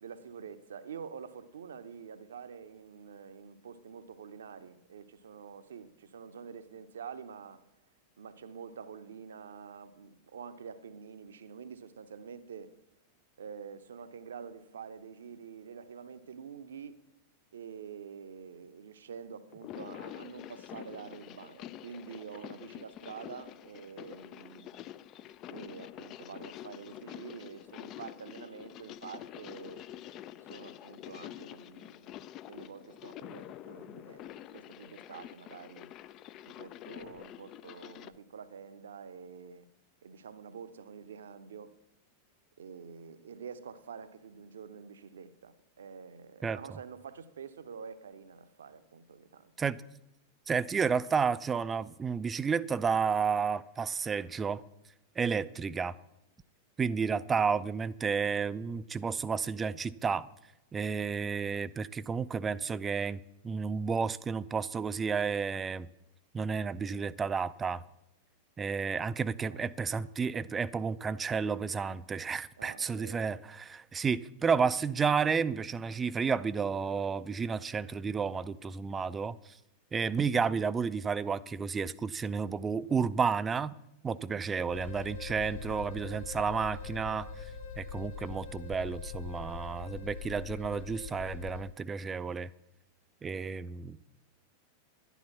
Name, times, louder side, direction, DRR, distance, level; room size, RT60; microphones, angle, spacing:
voice 1, 0.0-7.6 8.2-12.8 13.4-17.0 17.5-24.7 25.5-29.8 30.4-32.2 32.5-35.9 36.5-39.7 40.0-41.8 42.6-49.5 68.9-69.7 72.6-73.2 80.1-80.3 84.1-84.4, right 6 dB, 65° right, 0.8 m, -47 dB
sound 1, 19.5-38.2, left 12 dB, 35° left, 0.5 m, -47 dB
voice 2, 50.5-54.6 55.2-56.0 56.8-60.3 60.7-65.9 66.3-67.8 68.6-79.4 79.9-83.7 84.0-87.3 87.8-92.5 93.2-94.0, right 5 dB, 20° right, 0.4 m, -31 dB
sound 2, 84.7-91.6, left 6 dB, 55° left, 3.3 m, -42 dB
11.5 x 10.0 x 5.8 m
figure-of-eight pair, 90°, 0 cm